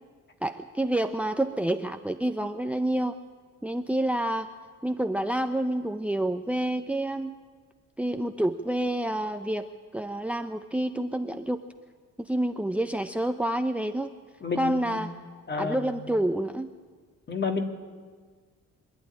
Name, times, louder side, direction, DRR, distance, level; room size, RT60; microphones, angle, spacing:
voice 1, 0.4-3.2 3.6-4.5 4.8-7.3 8.0-9.7 9.9-11.6 12.2-14.1 14.6-15.1 15.6-16.7, right 1 dB, 5° right, 9 dB, 0.7 m, -28 dB
voice 2, 14.4-15.0 15.5-16.0 17.3-17.6, left 4 dB, 35° left, 5 dB, 2.3 m, -30 dB
25.0 x 11.0 x 10.0 m, 1.5 s
cardioid pair, 90°, 30 cm